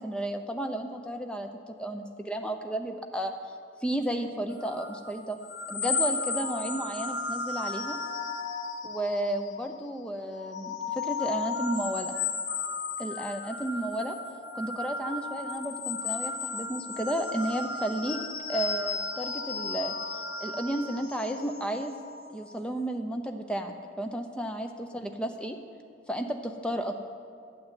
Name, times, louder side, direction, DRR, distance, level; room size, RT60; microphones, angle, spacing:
voice 1, 0.0-1.5 1.8-3.3 3.8-5.4 5.7-8.0 8.8-12.2 13.0-14.2 14.5-18.2 18.5-19.9 20.4-22.0 22.3-25.6 26.1-26.9, right 1 dB, 5° left, 5 dB, 0.6 m, -33 dB
sound 1, 4.6-9.8 10.2-22.5, left 4 dB, 65° left, 0.7 m, -34 dB
11.0 x 6.2 x 9.1 m, 2.3 s
head